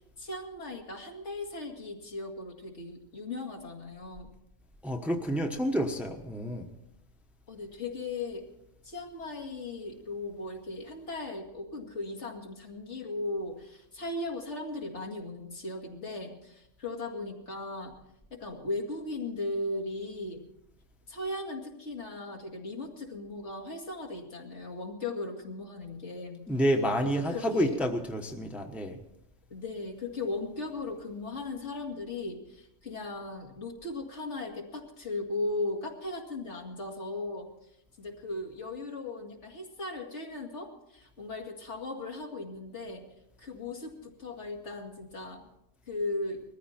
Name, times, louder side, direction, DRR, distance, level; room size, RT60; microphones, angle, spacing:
voice 1, 0.2-4.3 7.5-8.5 8.8-17.9 18.3-20.5 21.1-26.5 27.0-27.8 29.5-37.5 38.0-43.1 43.4-45.5 45.9-46.4, left 2 dB, 70° left, 1 dB, 2.5 m, -37 dB
voice 2, 4.8-6.7 26.5-29.0, equal, ahead, 3 dB, 1.1 m, -29 dB
20.5 x 14.5 x 4.4 m, 0.84 s
omnidirectional pair, 1.3 m